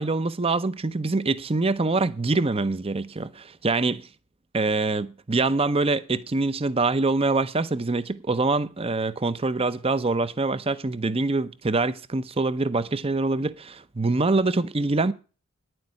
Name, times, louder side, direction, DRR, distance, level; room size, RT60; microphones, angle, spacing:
voice 1, 0.0-4.1 4.5-15.1, right 3 dB, 30° right, 0.7 m, -25 dB
10.0 x 7.9 x 9.7 m
head